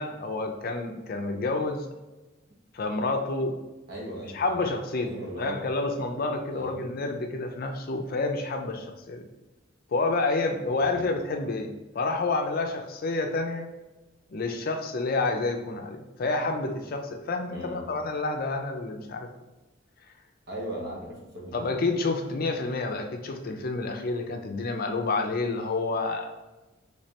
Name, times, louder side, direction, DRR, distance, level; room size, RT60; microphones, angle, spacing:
voice 1, 0.0-1.9 2.7-3.6 4.3-9.2 9.9-13.7 14.3-19.3 21.5-26.3, left 3 dB, 50° left, 4 dB, 0.5 m, -29 dB
voice 2, 3.9-4.7 5.0-5.6 6.5-6.9 10.8-11.1 17.5-17.8 20.5-21.6, right 1 dB, 55° right, -2 dB, 1.1 m, -38 dB
3.2 x 3.2 x 2.8 m, 1.1 s
head